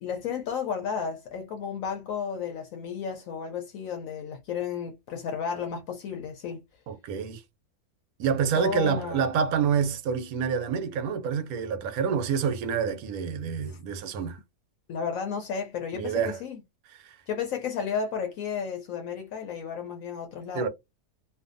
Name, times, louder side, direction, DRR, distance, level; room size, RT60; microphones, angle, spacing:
voice 1, 0.0-6.6 8.5-9.2 13.7-13.8 14.9-16.6 17.3-20.7, left 6 dB, 70° left, 0.9 m, -33 dB
voice 2, 6.9-7.4 8.2-14.4 15.9-16.4 17.0-17.2 20.5-20.7, right 7 dB, 80° right, 1.0 m, -27 dB
2.6 x 2.3 x 2.5 m
omnidirectional pair, 1.6 m